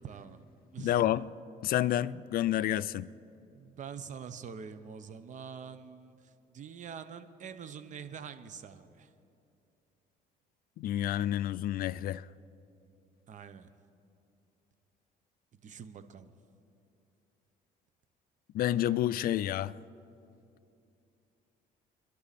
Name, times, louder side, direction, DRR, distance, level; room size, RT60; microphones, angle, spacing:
voice 1, 0.0-0.4 0.7-1.0 3.5-6.2 6.5-9.1 13.3-13.7 15.5-16.3, right 7 dB, 45° right, 1.0 m, -45 dB
voice 2, 0.8-1.3 1.6-3.1 10.8-12.2 18.5-19.7, left 12 dB, 60° left, 0.4 m, -29 dB
29.0 x 11.5 x 4.2 m
cardioid pair, 110°, 17 cm